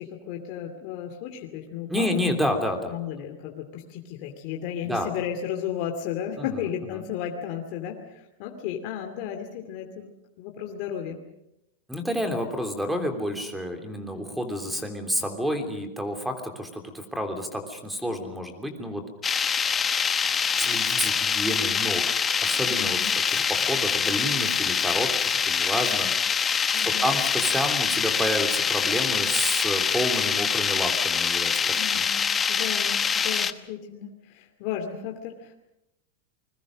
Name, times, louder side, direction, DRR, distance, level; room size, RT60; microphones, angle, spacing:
voice 1, 0.0-2.1 2.9-10.1 10.4-11.2 22.7-23.1 26.7-27.1 31.7-35.5, left 9 dB, 45° left, 3 dB, 2.5 m, -34 dB
voice 2, 1.9-2.9 4.8-5.1 6.4-7.0 11.9-19.0 20.6-22.1 22.4-23.0 23.3-26.1 26.8-32.0, equal, 5° right, 6 dB, 3.1 m, -29 dB
sound 1, 19.2-33.5, left 6 dB, 15° left, 1.0 m, -25 dB
28.5 x 21.5 x 6.4 m, 0.88 s
supercardioid pair, 150°, 0 cm